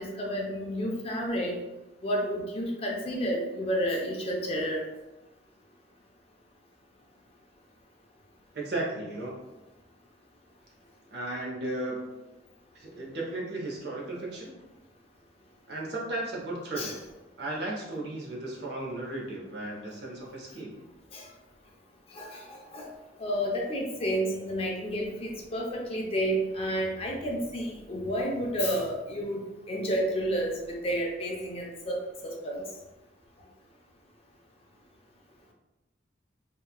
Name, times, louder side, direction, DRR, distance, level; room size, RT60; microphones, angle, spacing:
voice 1, 0.0-1.6 2.0-4.8 16.8-16.9 21.1-21.3 22.1-22.9 23.2-32.6, equal, 30° left, 0 dB, 0.4 m, -31 dB
voice 2, 8.5-9.4 11.1-12.1 12.7-14.5 15.7-17.0 17.4-20.8, right 2 dB, 60° right, -2 dB, 0.7 m, -35 dB
2.8 x 2.3 x 2.3 m, 1.0 s
head